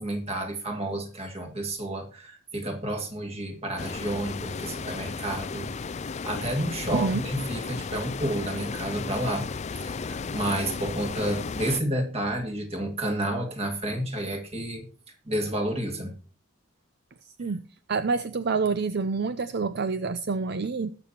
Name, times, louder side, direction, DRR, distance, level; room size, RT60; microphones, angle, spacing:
voice 1, 0.0-9.5 9.8-14.8 15.3-16.1, right 1 dB, 30° right, 5 dB, 2.1 m, -30 dB
sound 1, 3.8-11.8, left 4 dB, 35° left, 0.4 m, -34 dB
voice 2, 17.9-20.9, right 4 dB, 55° right, 12 dB, 0.5 m, -27 dB
20.0 x 6.9 x 2.9 m, 0.39 s
head